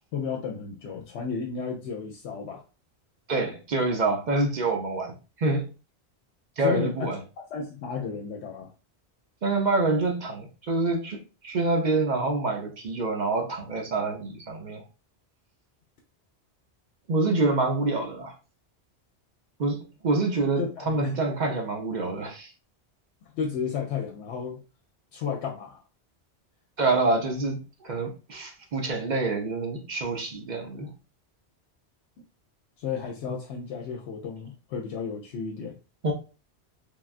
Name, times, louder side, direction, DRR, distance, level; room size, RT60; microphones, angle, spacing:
voice 1, 0.1-2.6 6.6-7.1 7.5-8.7 20.6-21.1 23.3-24.6 25.1-25.8 32.8-35.8, left 6 dB, 80° left, 0.8 m, -33 dB
voice 2, 3.3-5.7 6.6-7.2 9.4-14.8 17.1-18.3 19.6-22.5 26.8-30.9 36.0-36.1, right 3 dB, 50° right, 0.6 m, -26 dB
3.4 x 2.3 x 2.4 m
omnidirectional pair, 1.1 m